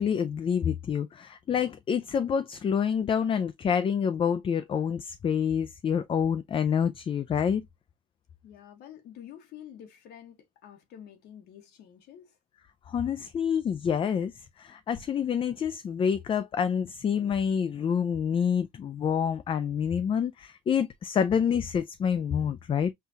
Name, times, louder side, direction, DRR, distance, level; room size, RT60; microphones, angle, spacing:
voice 1, 0.0-7.6 12.9-22.9, left 7 dB, 30° left, 0.4 m, -27 dB
voice 2, 8.4-12.3, left 10 dB, 75° left, 1.0 m, -48 dB
5.6 x 2.4 x 2.5 m
cardioid pair, 110°, 17 cm